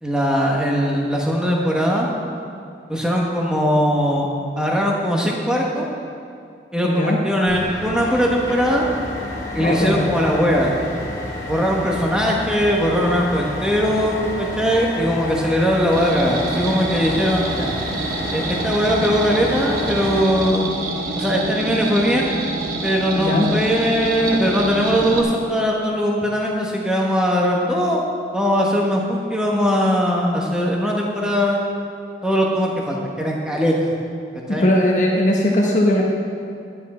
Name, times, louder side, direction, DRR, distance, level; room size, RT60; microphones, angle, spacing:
voice 1, 0.0-2.1 2.9-4.3 4.6-5.9 6.7-8.8 9.5-10.7 11.5-17.7 18.3-20.7 21.2-22.3 22.8-28.0 28.3-31.6 32.2-33.9 34.5-34.7, equal, 5° right, -2 dB, 1.2 m, -20 dB
voice 2, 6.8-7.2 9.6-10.1 23.2-23.5 34.6-36.0, left 1 dB, 45° left, -2 dB, 1.1 m, -18 dB
sound 1, 7.5-20.2, left 2 dB, 20° left, 1.5 m, -30 dB
sound 2, 15.9-25.2, right 2 dB, 55° right, 0.9 m, -27 dB
11.5 x 10.0 x 4.3 m, 2.4 s
head